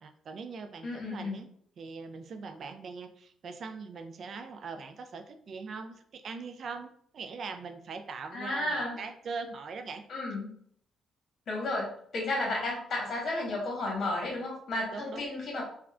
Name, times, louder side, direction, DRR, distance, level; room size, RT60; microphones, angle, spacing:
voice 1, 0.0-1.5 1.8-10.0 14.9-15.2, right 4 dB, 55° right, 6 dB, 0.3 m, -41 dB
voice 2, 0.8-1.4 8.3-9.0 10.1-10.5 11.5-15.6, left 2 dB, 55° left, -2 dB, 1.1 m, -33 dB
3.6 x 2.2 x 2.4 m, 0.64 s
cardioid pair, 90°, 0 cm